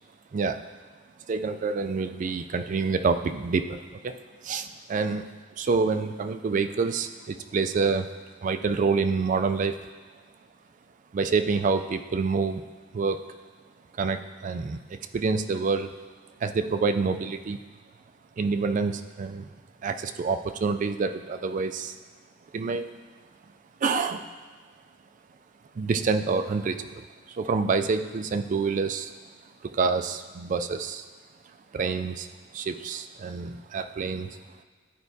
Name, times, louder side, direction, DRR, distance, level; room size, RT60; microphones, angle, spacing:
voice 1, 0.3-0.6 1.3-4.2 4.4-5.2 5.6-8.1 8.4-9.8 11.1-12.6 12.9-13.2 14.0-15.9 16.4-17.6 18.4-19.5 19.8-22.0 22.5-22.9 23.8-24.3 25.8-29.1 29.6-31.0 31.7-32.3 32.5-34.3, right 4 dB, 40° right, 8 dB, 0.3 m, -27 dB
11.5 x 4.5 x 2.7 m, 1.5 s
head